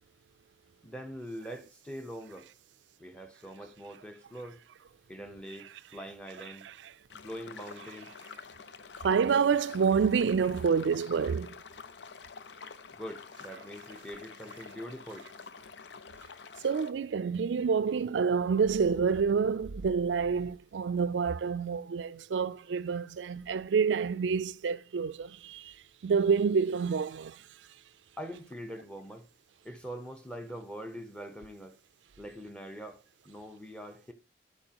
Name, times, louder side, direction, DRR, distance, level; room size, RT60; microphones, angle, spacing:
voice 1, 0.8-2.5 3.0-4.6 5.1-6.7 7.1-8.1 12.9-15.3 28.2-29.3 29.6-31.8 32.2-34.1, equal, 5° left, 0.9 m, -43 dB
sound 1, 7.1-16.9, left 5 dB, 75° left, 0.6 m, -48 dB
voice 2, 9.0-11.6 16.6-25.6 26.0-27.3, right 6 dB, 85° right, 0.4 m, -28 dB
12.5 x 4.7 x 2.9 m
head